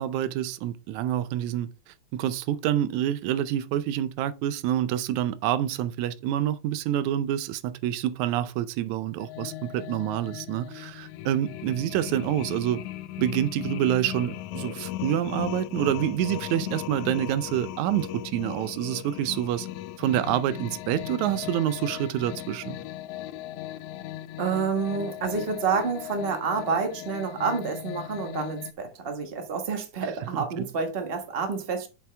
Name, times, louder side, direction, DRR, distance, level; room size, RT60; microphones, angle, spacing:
voice 1, 0.0-1.7 2.1-12.8 13.2-19.7 20.0-22.8 30.6-30.7, right 11 dB, 80° right, 2.0 m, -27 dB
sound 1, 9.2-28.7, left 14 dB, 85° left, 2.0 m, -37 dB
voice 2, 24.4-31.9, right 5 dB, 35° right, 1.0 m, -28 dB
7.6 x 7.2 x 3.3 m
omnidirectional pair, 3.3 m